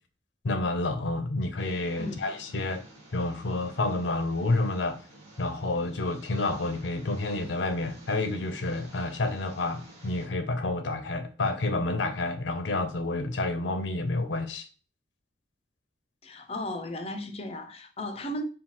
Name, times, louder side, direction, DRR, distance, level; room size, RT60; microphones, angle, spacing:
voice 1, 0.4-2.8 3.1-5.0 5.4-14.7, left 2 dB, 80° left, 0.6 m, -29 dB
Engine, 1.6-10.3, right 2 dB, 40° right, 1.4 m, -51 dB
voice 2, 16.2-18.4, left 1 dB, 35° left, 0.5 m, -35 dB
5.5 x 2.3 x 2.9 m
head